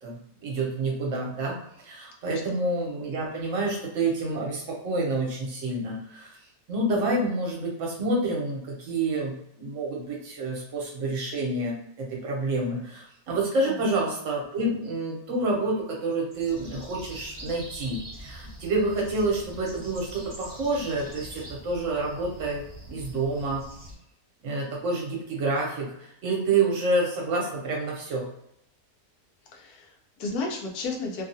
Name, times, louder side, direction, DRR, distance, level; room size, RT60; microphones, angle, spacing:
voice 1, 0.0-1.5 1.8-6.3 6.7-9.3 9.6-23.6 24.4-28.3, right 2 dB, 60° right, -2 dB, 1.2 m, -28 dB
sound 1, 16.3-23.9, equal, 30° right, 0.6 m, -44 dB
voice 2, 29.5-31.2, left 3 dB, 90° left, 1 dB, 1.2 m, -33 dB
3.0 x 2.3 x 2.7 m, 0.76 s
omnidirectional pair, 1.6 m